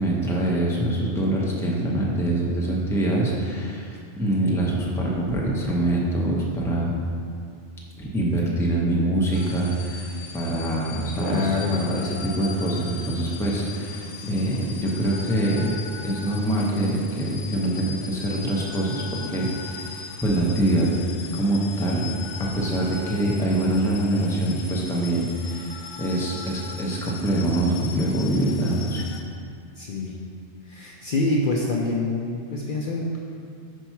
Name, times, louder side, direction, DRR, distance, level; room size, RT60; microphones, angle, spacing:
voice 1, 0.0-6.9 8.0-10.1 10.3-20.9 21.3-22.1 22.4-29.0, right 1 dB, 5° left, -4 dB, 0.6 m, -24 dB
sound 1, 9.3-29.2, left 5 dB, 90° left, 0.9 m, -39 dB
voice 2, 11.2-11.8 14.1-14.4 29.8-30.1 30.7-33.2, left 2 dB, 55° left, -2 dB, 0.7 m, -26 dB
4.7 x 4.5 x 5.6 m, 2.3 s
omnidirectional pair, 1.2 m